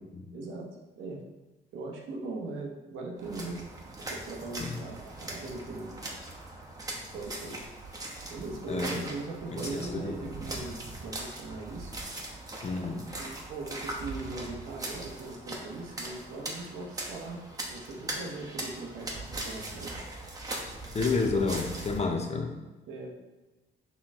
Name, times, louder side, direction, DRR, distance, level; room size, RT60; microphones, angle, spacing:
voice 1, 0.3-0.7 1.0-1.2 1.7-5.9 6.9-7.6 8.3-11.9 13.2-17.4 17.7-20.0 22.9-23.1, right 3 dB, 80° right, 0 dB, 0.9 m, -40 dB
sound 1, 3.2-22.0, right 2 dB, 20° right, 0.9 m, -40 dB
voice 2, 9.9-10.3 12.6-13.0 20.9-22.5, left 4 dB, 35° left, 4 dB, 0.6 m, -30 dB
4.2 x 3.1 x 3.5 m, 1.1 s
cardioid pair, 90°, 20 cm